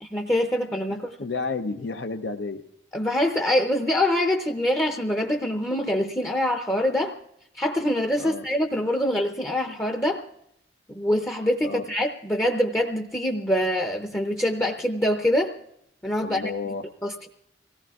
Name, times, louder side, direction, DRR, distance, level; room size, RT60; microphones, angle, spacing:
voice 1, 0.0-1.1 2.9-7.1 7.5-10.2 10.9-15.5 16.0-16.5 17.0-17.3, left 1 dB, 15° left, 3 dB, 0.6 m, -24 dB
voice 2, 1.2-2.6 8.2-8.4 11.6-11.8 16.2-16.8, left 4 dB, 75° left, 6 dB, 0.7 m, -31 dB
24.5 x 17.5 x 2.4 m, 0.76 s
head